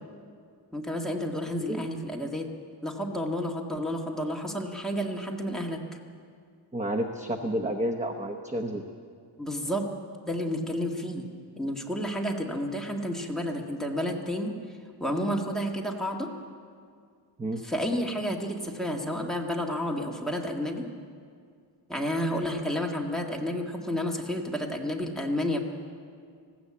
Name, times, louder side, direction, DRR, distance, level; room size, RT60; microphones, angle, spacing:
voice 1, 0.7-2.5 2.8-5.8 9.4-9.9 10.3-11.3 11.6-14.5 15.0-16.3 17.6-20.9 21.9-25.6, equal, ahead, -1 dB, 1.7 m, -30 dB
voice 2, 6.7-8.8 17.4-17.6, right 1 dB, 15° right, 5 dB, 0.8 m, -30 dB
19.5 x 15.5 x 8.6 m, 2.2 s
wide cardioid pair, 170°, 44 cm